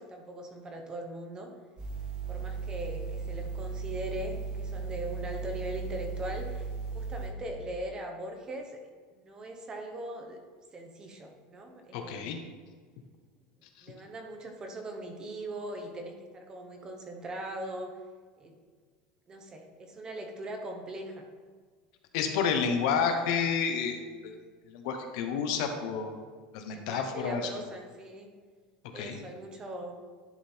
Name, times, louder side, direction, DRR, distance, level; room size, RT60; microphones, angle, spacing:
voice 1, 0.0-1.5 2.3-6.7 6.9-8.8 9.1-10.4 10.7-12.5 13.8-17.9 18.4-18.6 19.3-21.3 26.6-28.3 28.9-29.9, right 1 dB, 20° right, 3 dB, 0.8 m, -40 dB
sound 1, 1.8-7.3, right 4 dB, 35° right, 1.6 m, -36 dB
voice 2, 11.9-12.4 13.8-13.9 22.1-24.4 24.7-26.1 26.5-27.5 28.9-29.2, left 6 dB, 65° left, 5 dB, 0.9 m, -30 dB
11.0 x 3.8 x 4.4 m, 1.5 s
cardioid pair, 170°, 4 cm